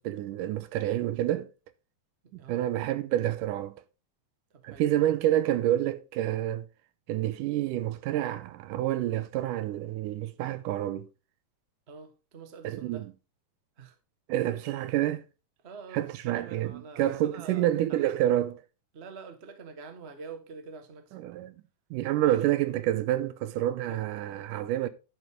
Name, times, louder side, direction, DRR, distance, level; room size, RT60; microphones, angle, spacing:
voice 1, 0.0-1.5 2.5-3.7 4.6-6.7 7.1-11.1 12.6-13.1 14.3-15.2 15.9-18.6 21.1-21.5 21.9-24.9, right 13 dB, 85° right, 2.2 m, -28 dB
voice 2, 2.2-2.6 4.5-4.8 11.9-13.1 13.8-14.0 15.6-18.1 18.9-21.2 22.3-22.4 23.9-24.5, right 5 dB, 55° right, 0.6 m, -46 dB
10.5 x 8.0 x 3.6 m
omnidirectional pair, 3.8 m